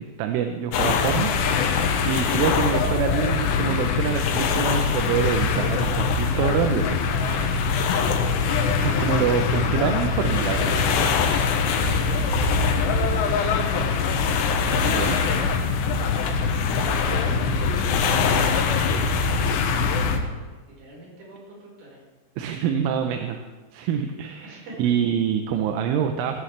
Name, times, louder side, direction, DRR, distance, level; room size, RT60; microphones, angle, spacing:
voice 1, 0.0-1.3 2.0-7.0 8.8-11.1 14.8-15.2 22.4-23.4 23.7-26.4, right 8 dB, 85° right, 5 dB, 3.3 m, -26 dB
sound 1, 0.7-20.2, left 5 dB, 70° left, 3.0 m, -22 dB
voice 2, 1.9-2.3 7.2-7.8 10.7-15.5 16.4-18.1 18.6-20.0 20.4-22.0 24.4-24.8, right 2 dB, 60° right, -4 dB, 6.7 m, -43 dB
17.0 x 16.5 x 3.3 m, 1.3 s
omnidirectional pair, 5.6 m